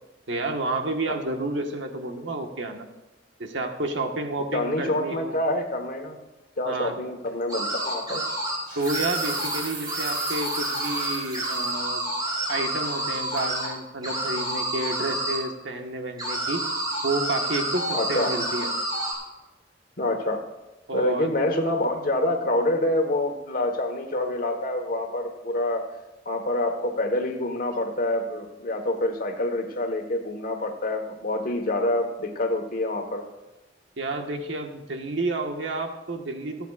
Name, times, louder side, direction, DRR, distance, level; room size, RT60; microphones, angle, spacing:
voice 1, 0.3-2.9 3.4-5.4 6.6-7.0 8.7-12.0 12.5-16.6 17.0-18.7 20.9-21.3 34.0-36.6, right 2 dB, 75° right, 3 dB, 1.5 m, -30 dB
voice 2, 4.5-6.2 6.6-8.2 17.9-18.3 20.0-20.4 20.9-25.8 26.2-33.3, left 1 dB, 50° left, 5 dB, 1.4 m, -26 dB
sound 1, 7.3-7.4 8.4-11.7 12.2-12.3 12.8-13.1 13.4-13.5, right 3 dB, 50° right, 3.3 m, -38 dB
sound 2, 7.5-8.6 8.9-9.6 9.9-13.7 14.0-15.4 16.2-19.1, right 1 dB, 20° right, 5.0 m, -29 dB
27.0 x 9.2 x 2.5 m, 1.1 s
head